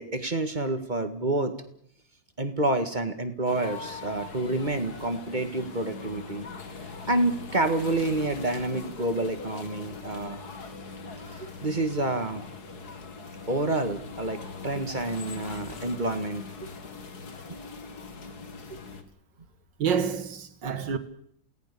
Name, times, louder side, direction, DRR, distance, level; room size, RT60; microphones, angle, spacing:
voice 1, 0.0-1.5 2.4-6.5 7.1-10.4 11.3-12.4 13.5-16.7 18.7-18.8, right 2 dB, 25° right, 2.1 m, -28 dB
sound 1, 3.5-19.0, left 4 dB, 60° left, 2.5 m, -41 dB
voice 2, 19.8-21.0, right 7 dB, 80° right, 2.4 m, -28 dB
28.0 x 18.5 x 7.0 m
omnidirectional pair, 1.9 m